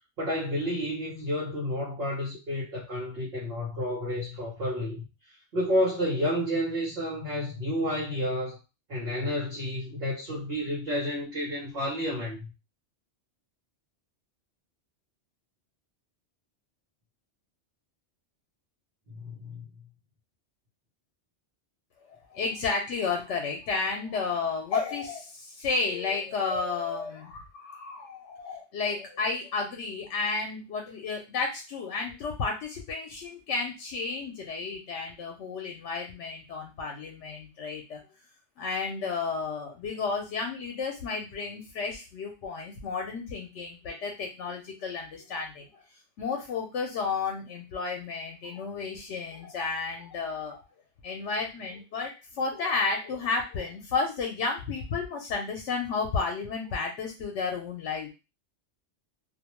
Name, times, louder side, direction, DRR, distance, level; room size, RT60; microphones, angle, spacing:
voice 1, 0.2-5.1 5.5-8.6 8.9-12.5 19.1-19.6, equal, 60° right, -5 dB, 1.0 m, -30 dB
voice 2, 22.1-38.0 38.6-45.8 46.2-50.6 51.0-58.1, left 4 dB, 90° left, 2 dB, 0.9 m, -32 dB
2.4 x 2.1 x 2.9 m, 0.28 s
omnidirectional pair, 1.2 m